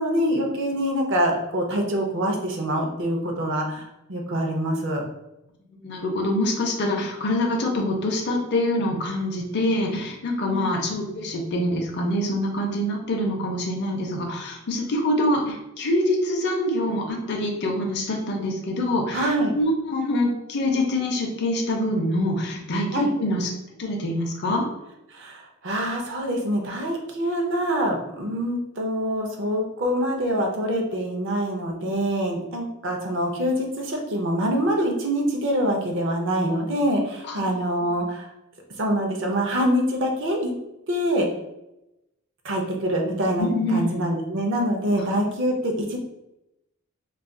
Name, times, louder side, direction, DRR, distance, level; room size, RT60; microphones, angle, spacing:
voice 1, 0.0-5.0 10.4-10.7 19.1-19.5 22.9-23.1 25.1-38.3 38.8-40.5 40.9-41.3 42.4-46.0, equal, 55° right, 2 dB, 0.6 m, -25 dB
voice 2, 5.8-23.5 23.8-24.6 37.3-37.5 43.4-44.0 44.9-45.1, left 1 dB, 50° left, 0 dB, 0.5 m, -25 dB
2.3 x 2.2 x 3.6 m, 0.90 s
head